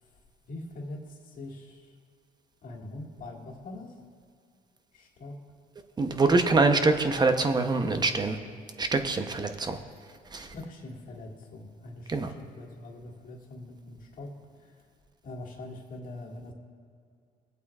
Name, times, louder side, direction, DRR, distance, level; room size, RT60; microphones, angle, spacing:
voice 1, 0.5-1.9 2.6-3.9 4.9-5.4 10.3-14.3 14.6-14.7 15.2-16.5, left 2 dB, 55° left, 0 dB, 1.9 m, -43 dB
voice 2, 6.0-8.4 8.8-9.8 10.3-10.5 12.1-12.3, right 3 dB, 25° right, 7 dB, 0.7 m, -24 dB
22.0 x 8.2 x 2.4 m, 2.3 s
cardioid pair, 110°, 17 cm